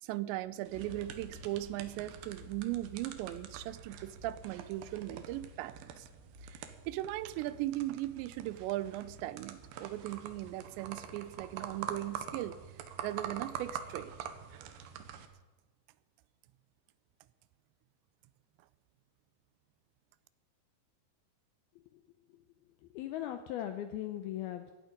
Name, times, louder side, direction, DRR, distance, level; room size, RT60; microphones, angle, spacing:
voice 1, 0.0-6.1 6.4-12.6 13.0-14.1, right 15 dB, 90° right, 15 dB, 2.9 m, -38 dB
sound 1, 0.7-12.5, equal, 25° right, 1.9 m, -55 dB
sound 2, 0.7-15.3, right 8 dB, 70° right, 2.9 m, -46 dB
voice 2, 22.9-24.7, left 12 dB, 80° left, 8 dB, 2.4 m, -38 dB
17.0 x 12.0 x 5.2 m, 1.3 s
omnidirectional pair, 5.0 m